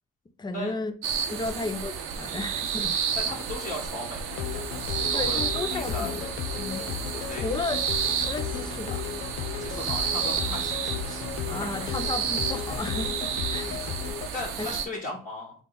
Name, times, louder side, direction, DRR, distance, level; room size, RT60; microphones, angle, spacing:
voice 1, 0.4-0.9 1.3-2.9 5.1-6.2 6.6-6.9 7.3-7.8 8.2-9.0 11.5-13.7 14.6-14.7, left 3 dB, 20° left, 0.6 m, -33 dB
sound 1, 1.0-14.9, right 7 dB, 80° right, 0.8 m, -31 dB
voice 2, 3.2-4.6 5.1-5.4 5.7-6.3 6.8-7.5 9.6-11.2 11.6-11.9 13.5-13.8 14.3-15.5, left 2 dB, 40° left, 1.6 m, -37 dB
sound 2, 4.3-14.3, left 10 dB, 80° left, 0.4 m, -34 dB
3.6 x 3.2 x 3.9 m
cardioid pair, 100°, 21 cm